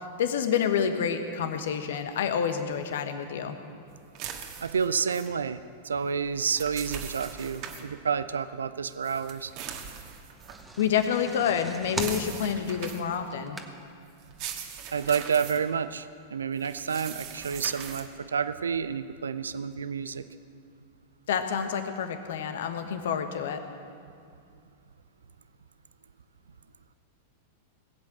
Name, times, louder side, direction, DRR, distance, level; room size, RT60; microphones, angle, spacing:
voice 1, 0.2-3.6 10.8-13.6 21.3-23.6, left 7 dB, 65° left, 8 dB, 1.2 m, -28 dB
sound 1, 4.2-5.3 6.3-7.8 9.0-10.6 11.9-13.2 14.2-15.6 16.6-18.1, right 8 dB, 50° right, 1.6 m, -40 dB
voice 2, 4.6-9.5 14.9-20.2, right 6 dB, 80° right, 13 dB, 0.5 m, -29 dB
sound 2, 10.3-14.1 14.5-14.6 14.9-15.0, right 2 dB, 10° right, 1.4 m, -39 dB
19.5 x 8.3 x 7.6 m, 2.3 s
figure-of-eight pair, 95°, 0 cm